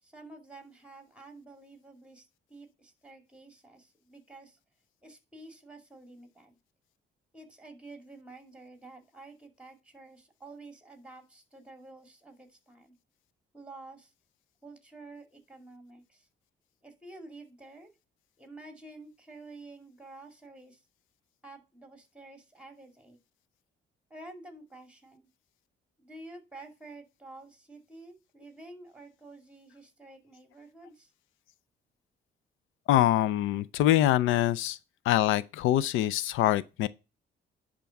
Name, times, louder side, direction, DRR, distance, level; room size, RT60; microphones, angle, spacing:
voice 1, 0.0-4.6 5.0-6.6 7.3-13.0 13.5-14.1 14.6-16.3 16.8-17.9 18.4-20.8 21.4-23.2 24.1-25.3 26.0-31.1, right 2 dB, 5° right, 2.3 m, -50 dB
voice 2, 32.9-34.8 35.0-36.9, left 13 dB, 90° left, 0.5 m, -24 dB
10.5 x 3.7 x 5.7 m
cardioid pair, 90°, 20 cm